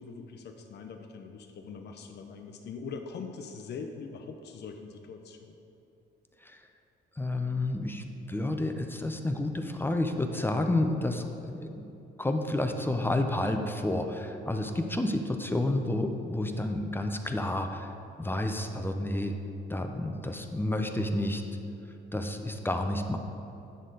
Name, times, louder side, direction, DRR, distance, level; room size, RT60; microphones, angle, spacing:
voice 1, 0.0-5.6, left 5 dB, 60° left, 4 dB, 0.6 m, -42 dB
voice 2, 7.2-11.8 12.2-19.4 19.7-21.4 22.1-23.2, left 1 dB, 10° left, 5 dB, 0.6 m, -30 dB
9.2 x 6.4 x 3.9 m, 2.8 s
cardioid pair, 90°, 20 cm